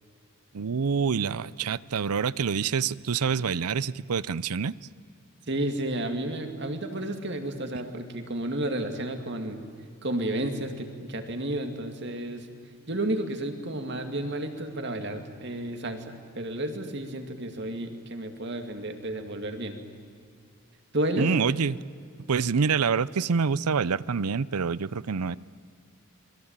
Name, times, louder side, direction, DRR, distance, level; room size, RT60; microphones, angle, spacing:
voice 1, 0.5-4.7 21.2-21.8 22.3-25.4, right 6 dB, 90° right, 0.6 m, -26 dB
voice 2, 5.5-9.6 10.0-12.5 12.9-19.8 20.9-21.3, right 1 dB, 50° right, 2.4 m, -31 dB
27.0 x 21.5 x 8.9 m
head